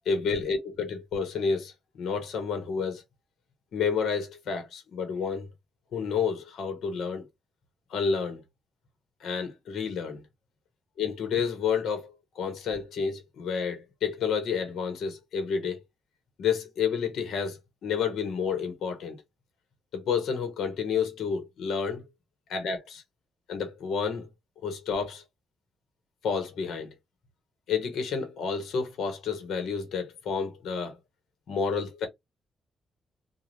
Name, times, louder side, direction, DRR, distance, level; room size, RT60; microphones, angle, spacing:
voice 1, 0.1-3.0 3.7-5.5 5.9-7.3 7.9-8.4 9.2-10.2 11.0-15.8 16.4-17.6 17.8-19.2 19.9-22.0 22.5-23.0 23.5-24.3 24.6-25.2 26.2-26.9 27.7-31.0 31.5-32.1, left 6 dB, 80° left, 1.0 m, -30 dB
2.5 x 2.2 x 3.1 m
cardioid pair, 75°, 0 cm